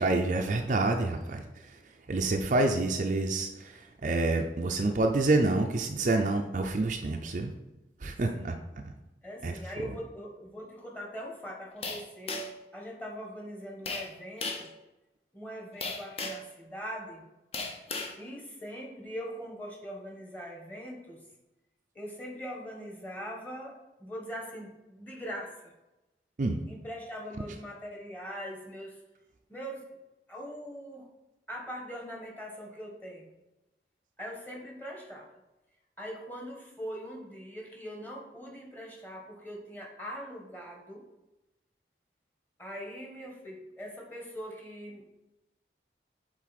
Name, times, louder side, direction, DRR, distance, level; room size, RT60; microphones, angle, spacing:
voice 1, 0.0-1.4 2.1-3.5 4.0-7.5 8.0-8.5 8.8-8.9 9.4-9.5 26.4-26.6, right 2 dB, 45° right, 3 dB, 0.5 m, -27 dB
voice 2, 9.2-14.7 15.3-17.2 18.2-21.2 21.9-25.5 26.7-29.0 29.5-29.9 30.3-31.1 31.5-33.3 34.2-35.3 36.0-41.0 42.6-45.0, equal, 10° left, -1 dB, 1.2 m, -42 dB
sound 1, 11.8-12.7 13.9-14.1 14.4-14.7 15.8-16.5 17.5-18.2, left 3 dB, 35° left, 0.7 m, -35 dB
7.3 x 3.9 x 4.1 m, 1.0 s
head